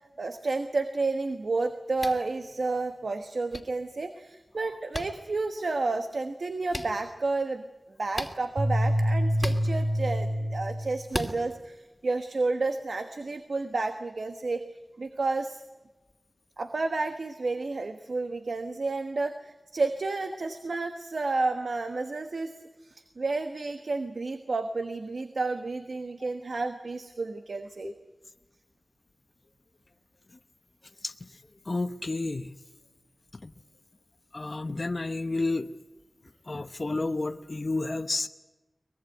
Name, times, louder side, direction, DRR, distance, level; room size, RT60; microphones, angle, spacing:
voice 1, 0.2-7.6 8.0-14.7 15.0-15.6 16.6-22.5 22.8-27.9, right 3 dB, 80° right, 7 dB, 1.3 m, -31 dB
sound 1, 2.0-2.2 3.5-3.6 4.9-5.1 6.7-6.9 8.1-8.4 9.4-9.6 11.1-11.3, left 1 dB, 15° left, 2.5 m, -33 dB
sound 2, 8.6-11.1, equal, 55° right, 2.8 m, -26 dB
voice 2, 31.7-32.5 33.4-33.5 34.3-35.7 36.5-38.3, left 2 dB, 50° left, 9 dB, 0.9 m, -30 dB
23.5 x 20.5 x 9.3 m, 1.1 s
wide cardioid pair, 65°, 0 cm